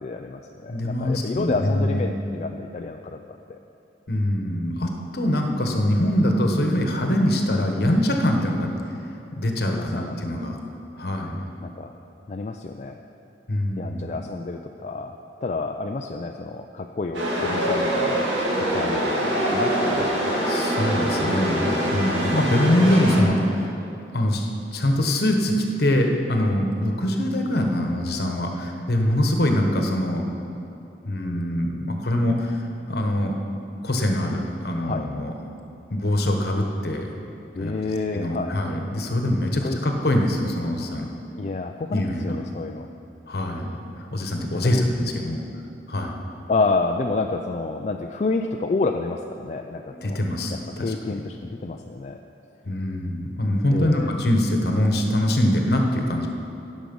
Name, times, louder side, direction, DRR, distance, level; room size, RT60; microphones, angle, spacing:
voice 1, 0.0-3.2 9.7-10.4 11.6-11.9 12.3-13.0 13.8-15.1 15.4-18.3 18.7-20.4 34.8-35.0 37.5-38.5 39.6-39.8 41.4-42.9 44.5-44.9 45.2-45.4 46.5-50.2 50.8-52.2 53.7-54.1, left 3 dB, 40° left, 3 dB, 0.4 m, -29 dB
voice 2, 0.7-2.1 4.1-8.7 9.3-10.6 11.0-11.4 13.5-14.2 20.0-20.1 20.5-23.7 24.1-30.2 31.0-33.4 33.8-35.3 35.9-37.1 37.6-37.7 38.1-41.1 41.9-42.4 43.3-43.8 44.1-45.4 45.9-46.2 49.9-50.9 52.6-56.3, left 1 dB, 60° left, 2 dB, 1.1 m, -23 dB
Chatter / Subway metro underground, 17.1-23.2, equal, 80° right, 2.1 m, -24 dB
16.5 x 6.3 x 5.3 m, 2.8 s
head